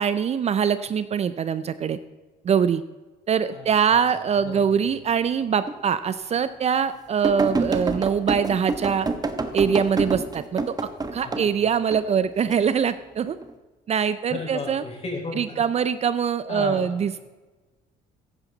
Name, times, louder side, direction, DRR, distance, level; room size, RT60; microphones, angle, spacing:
voice 1, 0.0-2.0 2.4-2.8 3.3-9.1 9.5-13.4 13.9-14.8 15.4-17.3, right 7 dB, 40° right, 13 dB, 0.5 m, -23 dB
voice 2, 3.5-4.8 11.2-11.5 14.3-15.6 16.5-16.9, left 3 dB, 35° left, 0 dB, 4.9 m, -35 dB
sound 1, 5.7-5.8 6.4-6.5 7.2-11.5 11.9-12.5 13.2-13.5, right 3 dB, 25° right, 1.1 m, -27 dB
15.0 x 10.5 x 4.0 m, 1.2 s
cardioid pair, 110°, 17 cm